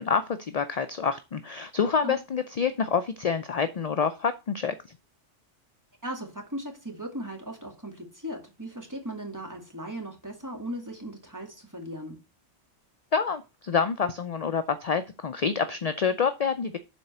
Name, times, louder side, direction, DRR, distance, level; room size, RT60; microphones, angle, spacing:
voice 1, 0.0-4.9 13.1-16.8, left 6 dB, 50° left, 0.5 m, -27 dB
voice 2, 6.0-12.2, equal, 15° right, 2.0 m, -37 dB
7.1 x 4.2 x 6.7 m
omnidirectional pair, 1.2 m